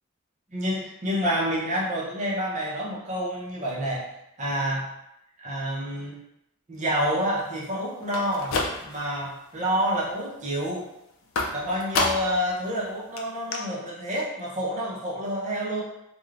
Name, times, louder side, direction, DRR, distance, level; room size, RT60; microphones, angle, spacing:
voice 1, 0.5-4.1 4.4-4.9 5.4-6.2 6.7-10.9 11.5-15.8, equal, 35° right, -6 dB, 0.7 m, -28 dB
sound 1, 8.0-9.2 9.6-10.1 11.4-12.5 12.8-12.9 13.2-13.3 13.5-13.6, left 3 dB, 70° left, 0.4 m, -29 dB
3.2 x 2.3 x 2.4 m, 0.85 s
head